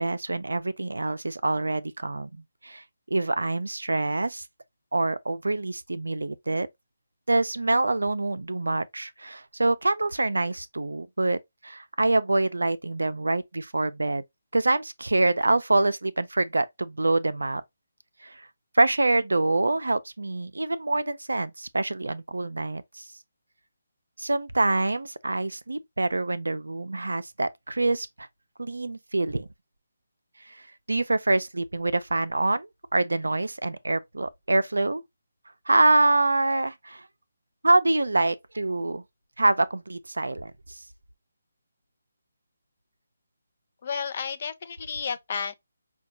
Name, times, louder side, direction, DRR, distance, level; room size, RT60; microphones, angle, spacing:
voice 1, 0.0-4.5 4.9-6.7 7.3-14.2 14.5-17.6 18.2-18.5 18.7-23.0 24.2-28.3 28.6-29.5 30.5-35.0 35.7-37.1 37.6-39.0 39.4-40.8, right 2 dB, 85° right, 0.4 m, -26 dB
voice 2, 43.8-45.5, left 6 dB, 45° left, 0.6 m, -32 dB
5.0 x 2.3 x 2.7 m
figure-of-eight pair, 155°, 0 cm